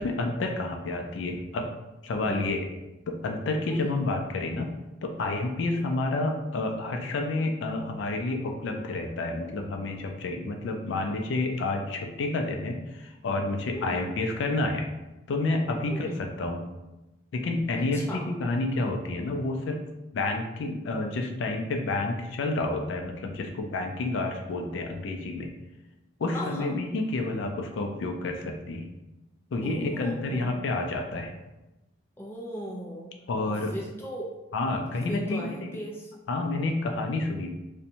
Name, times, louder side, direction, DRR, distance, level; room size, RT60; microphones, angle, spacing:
voice 1, 0.0-1.7 2.0-2.7 3.1-14.9 15.3-16.6 17.3-19.8 20.1-25.5 26.2-28.9 29.5-31.3 33.3-33.7 34.5-35.8 36.3-37.5, left 2 dB, 80° left, 3 dB, 0.3 m, -29 dB
voice 2, 17.9-18.3 26.3-26.8 29.6-30.6 32.2-33.2 33.5-34.3 35.1-36.1, equal, 10° left, -3 dB, 0.4 m, -38 dB
2.6 x 2.1 x 2.8 m, 1.0 s
head